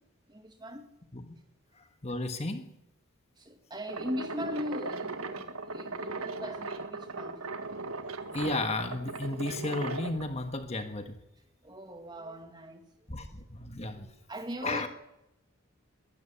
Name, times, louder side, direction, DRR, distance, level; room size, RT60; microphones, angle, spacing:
voice 1, 0.3-0.9 3.4-7.4 11.6-12.8 14.0-14.9, equal, 20° right, 2.1 m, -39 dB
voice 2, 1.7-2.7 8.3-11.2 13.1-14.1 14.6-14.9, left 2 dB, 30° left, 1.4 m, -34 dB
sound 1, 3.9-10.2, right 3 dB, 85° right, 1.7 m, -38 dB
21.5 x 12.5 x 10.0 m
head